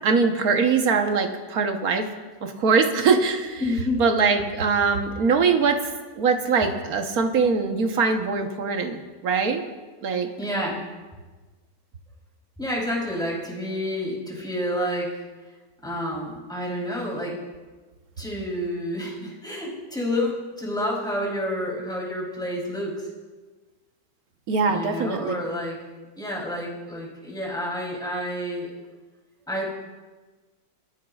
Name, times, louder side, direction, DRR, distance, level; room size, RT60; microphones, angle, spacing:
voice 1, 0.0-2.1 2.4-3.6 4.0-9.6 10.0-10.3 24.5-25.3, right 5 dB, 55° right, 5 dB, 1.5 m, -22 dB
voice 2, 3.6-4.0 10.4-10.9 12.6-15.3 15.8-17.4 18.2-23.1 24.6-25.8 26.2-28.7 29.5-29.7, left 1 dB, ahead, -4 dB, 3.5 m, -29 dB
27.5 x 11.0 x 2.4 m, 1.3 s
omnidirectional pair, 1.9 m